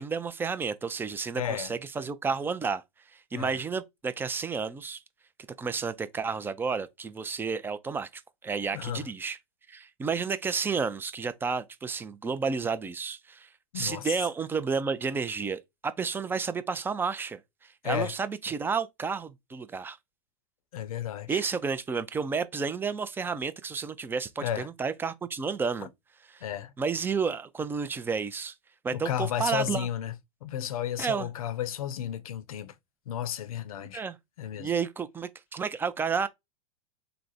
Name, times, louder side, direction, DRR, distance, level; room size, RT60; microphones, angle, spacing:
voice 1, 0.0-2.8 3.1-5.0 5.6-9.4 9.7-13.5 13.7-20.0 21.3-25.9 26.3-26.4 26.8-28.5 28.8-29.9 31.0-31.3 33.9-34.2 34.5-36.3, right 5 dB, 10° right, 0.3 m, -31 dB
voice 2, 1.4-1.7 3.3-3.6 8.7-9.1 13.7-14.2 17.8-18.1 20.7-21.4 24.4-24.7 26.4-26.7 28.9-30.1 30.4-32.7 33.1-34.0 34.4-34.7, left 10 dB, 75° left, 0.5 m, -33 dB
3.3 x 2.0 x 3.9 m
hypercardioid pair, 100°, 18 cm